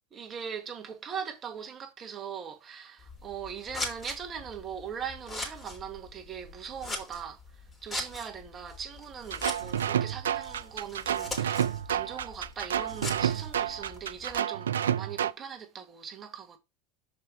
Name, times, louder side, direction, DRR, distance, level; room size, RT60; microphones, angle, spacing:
voice 1, 0.1-16.6, right 7 dB, 30° right, 1.5 m, -40 dB
Scissors, 3.0-14.4, left 2 dB, 25° left, 3.5 m, -42 dB
sound 1, 9.3-15.3, right 9 dB, 85° right, 0.4 m, -29 dB
6.7 x 5.1 x 4.5 m
hypercardioid pair, 85°, 0 cm